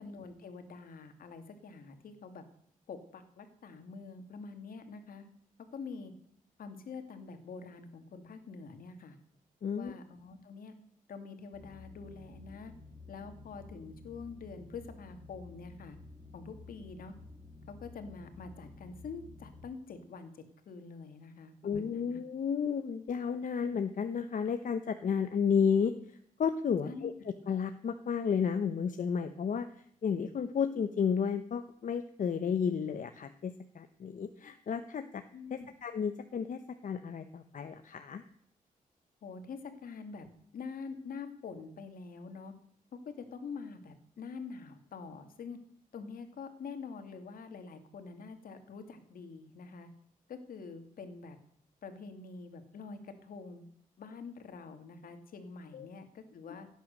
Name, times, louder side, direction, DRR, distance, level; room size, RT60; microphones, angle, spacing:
voice 1, 0.0-2.4 2.9-5.3 5.7-6.1 6.6-9.2 9.7-10.7 11.1-12.7 13.1-16.0 16.3-17.2 17.7-20.3 20.7-22.2 26.8-27.1 35.3-35.7 39.2-40.3 40.5-42.5 42.9-45.6 45.9-49.9 50.3-51.4 51.8-53.6 54.0-56.7, left 5 dB, 80° left, 7 dB, 2.4 m, -46 dB
voice 2, 9.6-9.9 21.6-25.9 26.4-27.1 27.5-29.7 30.0-35.2 35.5-38.2 55.7-55.9, left 6 dB, 60° left, 8 dB, 1.0 m, -32 dB
sound 1, 11.5-19.7, left 3 dB, 20° right, 3.4 m, -52 dB
17.0 x 9.3 x 6.7 m, 0.67 s
cardioid pair, 90°, 15 cm